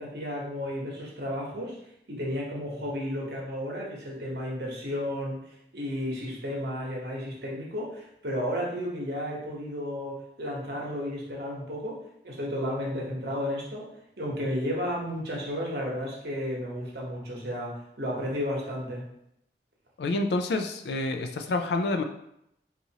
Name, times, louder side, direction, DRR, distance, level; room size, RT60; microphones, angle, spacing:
voice 1, 0.0-1.8 2.1-5.4 5.7-12.0 12.2-13.9 14.2-19.0, equal, 65° right, -3 dB, 1.0 m, -33 dB
voice 2, 20.0-22.0, left 2 dB, 70° left, 6 dB, 0.4 m, -28 dB
4.1 x 2.5 x 2.8 m, 0.77 s
head